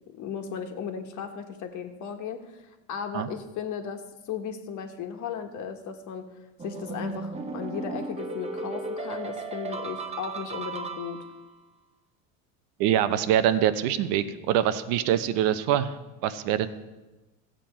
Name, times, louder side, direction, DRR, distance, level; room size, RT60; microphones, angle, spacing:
voice 1, 0.1-2.6 2.9-6.3 6.6-11.2, left 7 dB, 50° left, 5 dB, 1.4 m, -36 dB
sound 1, 6.6-11.5, right 3 dB, 15° right, 0.8 m, -35 dB
voice 2, 12.8-16.7, right 10 dB, 70° right, 12 dB, 0.9 m, -24 dB
15.0 x 7.6 x 4.4 m, 1.1 s
supercardioid pair, 120°, 39 cm